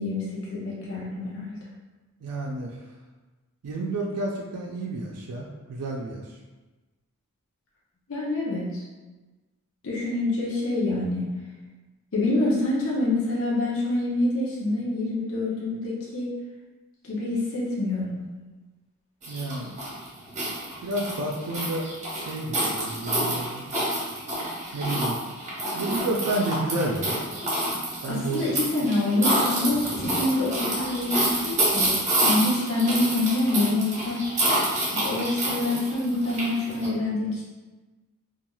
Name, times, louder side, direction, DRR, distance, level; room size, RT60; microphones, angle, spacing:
voice 1, 0.0-1.5 8.1-8.8 9.8-11.3 12.1-16.3 17.0-18.2 28.1-32.0 32.2-34.2 34.9-37.4, left 2 dB, 60° left, -5 dB, 0.6 m, -26 dB
voice 2, 2.2-2.8 3.6-6.3 19.3-19.8 20.8-21.9 22.1-23.7 24.7-25.2 25.7-27.2 28.0-28.5, right 2 dB, 85° right, -1 dB, 0.4 m, -30 dB
sound 1, 19.2-36.9, right 1 dB, 30° right, 0.9 m, -28 dB
3.0 x 2.3 x 2.2 m, 1.2 s
head